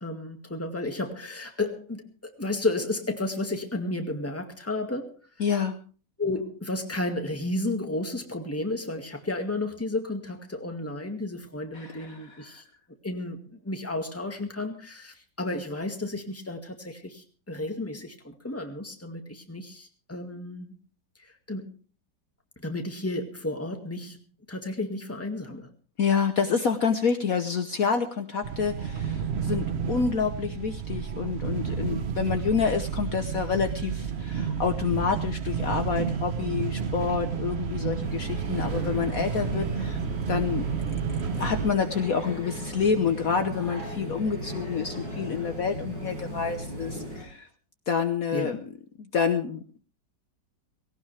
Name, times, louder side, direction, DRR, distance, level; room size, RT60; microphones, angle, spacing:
voice 1, 0.0-5.2 6.2-12.6 13.0-20.8 21.5-21.8 22.6-24.2 24.5-25.7 38.6-39.0 48.3-48.7, left 2 dB, 10° left, 4 dB, 1.9 m, -32 dB
voice 2, 5.4-5.8 11.7-12.2 12.5-12.6 26.0-40.0 40.3-40.7 41.3-47.5 47.9-48.6 49.0-49.8, left 6 dB, 55° left, 7 dB, 1.4 m, -28 dB
sound 1, 28.4-41.7, right 7 dB, 45° right, 1.0 m, -31 dB
sound 2, 38.0-47.3, equal, 80° right, 6.0 m, -36 dB
18.5 x 17.5 x 3.4 m, 0.39 s
omnidirectional pair, 1.9 m